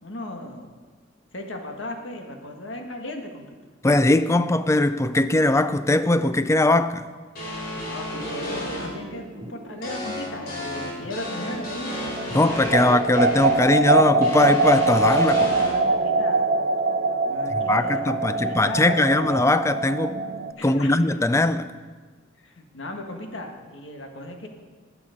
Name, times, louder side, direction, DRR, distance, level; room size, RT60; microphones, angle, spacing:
voice 1, 0.0-0.7 1.3-3.5 7.8-12.0 15.4-16.5 17.2-19.1 20.6-20.9 22.4-24.5, left 1 dB, 70° left, 1.7 m, -36 dB
voice 2, 3.8-7.1 12.3-15.6 17.5-20.2 20.6-21.7, left 2 dB, 15° left, 0.4 m, -20 dB
sound 1, 7.3-8.9 9.8-13.6 14.2-15.7, left 1 dB, 50° left, 4.0 m, -32 dB
sound 2, 8.1-11.7 12.0-20.5, right 3 dB, 40° right, 0.6 m, -24 dB
20.0 x 7.0 x 5.2 m
head